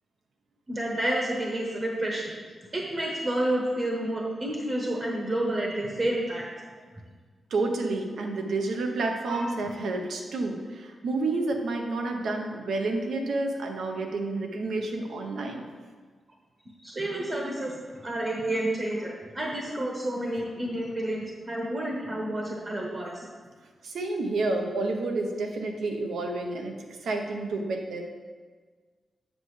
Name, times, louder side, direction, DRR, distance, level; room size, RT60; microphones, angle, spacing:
voice 1, 0.7-2.3 2.7-6.5 9.3-9.6 16.8-23.3, right 1 dB, 35° right, -2 dB, 1.0 m, -30 dB
voice 2, 7.5-15.7 23.8-28.0, right 2 dB, 85° right, 3 dB, 0.9 m, -30 dB
7.5 x 6.7 x 3.3 m, 1.5 s
wide cardioid pair, 150°, 0 cm